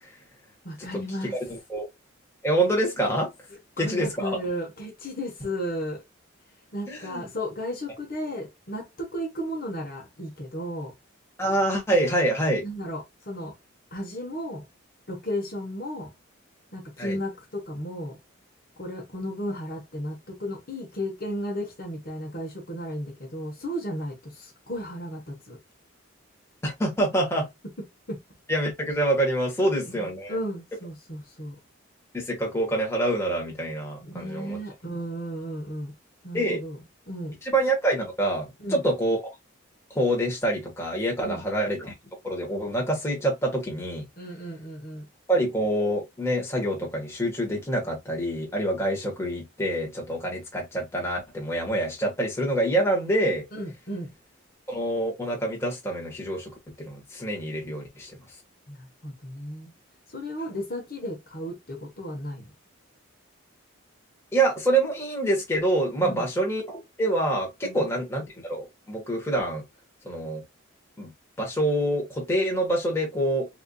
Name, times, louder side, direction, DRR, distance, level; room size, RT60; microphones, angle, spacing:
voice 1, 0.6-1.4 3.8-6.0 6.7-10.9 12.6-13.5 13.9-14.6 15.1-16.1 16.7-18.2 18.8-25.6 28.1-28.2 29.6-31.5 34.0-35.9 36.2-36.8 37.1-37.3 38.6-38.8 41.2-41.4 44.2-45.0 53.5-54.1 58.7-59.7 60.1-62.4 66.0-66.3 67.6-67.9, equal, 45° left, 1.2 m, -34 dB
voice 2, 1.5-1.9 2.4-3.3 3.8-4.4 6.9-7.3 11.4-12.6 17.0-17.2 26.6-27.5 28.5-30.4 32.1-34.6 36.3-36.6 37.5-39.2 39.9-41.9 42.2-44.1 45.3-53.4 54.7-56.5 56.8-58.2 64.3-69.6 70.0-70.4 71.0-71.1 71.4-73.5, right 1 dB, 15° left, 1.4 m, -26 dB
4.5 x 2.7 x 2.3 m
head